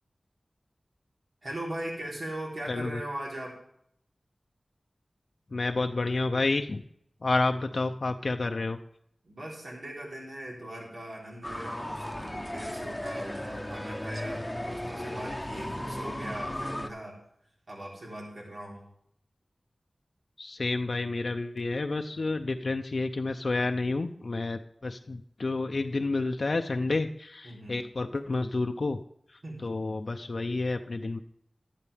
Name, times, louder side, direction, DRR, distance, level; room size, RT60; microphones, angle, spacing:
voice 1, 1.4-3.6 9.2-17.2 17.7-18.9 27.4-27.8 29.4-29.7, right 1 dB, 75° right, -3 dB, 3.9 m, -40 dB
voice 2, 2.7-3.0 5.5-6.8 7.2-8.8 20.4-29.0 29.3-31.2, left 3 dB, 65° left, 6 dB, 0.6 m, -30 dB
sound 1, 11.4-16.9, left 1 dB, 15° left, 0.9 m, -36 dB
12.0 x 11.5 x 3.5 m, 0.68 s
cardioid pair, 40°, 0 cm